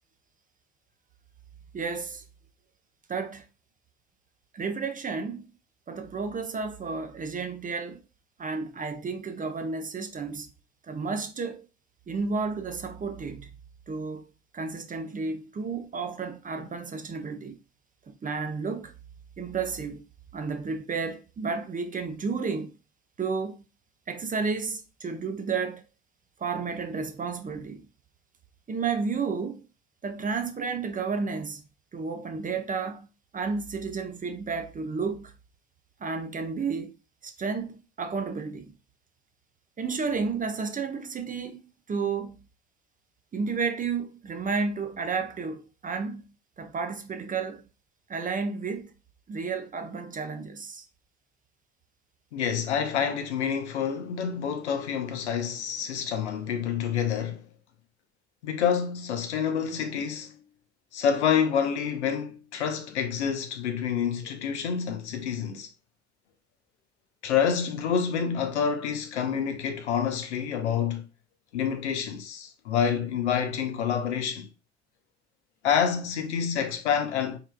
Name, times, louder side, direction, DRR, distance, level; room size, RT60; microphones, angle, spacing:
voice 1, 1.7-2.2 3.1-3.4 4.5-5.5 5.9-8.0 8.4-10.5 10.9-11.6 12.1-13.5 13.9-14.2 14.5-17.6 18.1-18.9 19.4-20.0 20.3-22.7 23.2-23.6 24.1-25.8 26.4-27.9 28.7-29.6 30.0-31.6 31.9-33.1 33.3-35.3 36.0-36.9 37.2-38.7 39.8-41.6 41.9-42.4 43.3-46.2 46.6-47.6 48.1-48.9 49.3-50.8, right 5 dB, 25° right, 0.7 m, -32 dB
voice 2, 52.3-57.4 58.4-60.4 60.9-65.7 67.2-71.1 71.5-74.5 75.6-77.4, left 7 dB, 80° left, 0.7 m, -28 dB
4.4 x 3.8 x 2.2 m
figure-of-eight pair, 55°, 34 cm